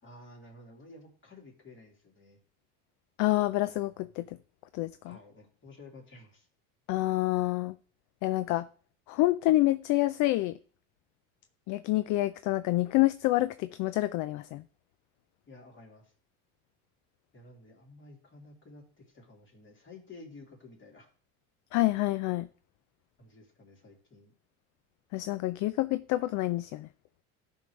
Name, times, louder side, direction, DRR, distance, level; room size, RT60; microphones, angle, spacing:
voice 1, 0.0-2.4 5.0-6.5 15.5-16.1 17.3-21.1 23.2-24.3, left 2 dB, 30° left, 3.1 m, -52 dB
voice 2, 3.2-4.3 4.7-5.2 6.9-7.8 8.2-8.7 9.1-10.6 11.7-14.6 21.7-22.5 25.1-26.9, left 17 dB, 55° left, 0.4 m, -27 dB
13.5 x 5.4 x 3.2 m
supercardioid pair, 100°, 36 cm